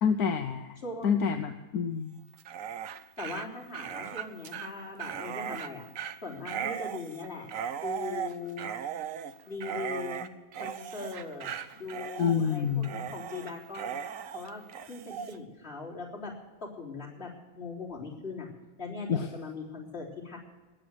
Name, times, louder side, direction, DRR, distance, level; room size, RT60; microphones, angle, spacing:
voice 1, 0.0-0.8 1.0-2.2 12.2-12.9 19.1-19.3, left 7 dB, 75° left, 7 dB, 1.3 m, -27 dB
voice 2, 0.8-1.1 3.2-5.9 6.2-7.5 7.7-8.7 9.5-14.0 14.3-16.3 16.6-17.3 17.5-18.5 18.8-20.4, left 4 dB, 40° left, -3 dB, 3.9 m, -40 dB
Dog, 2.3-15.4, right 8 dB, 65° right, 1.2 m, -38 dB
19.0 x 7.8 x 7.9 m, 1.2 s
omnidirectional pair, 1.6 m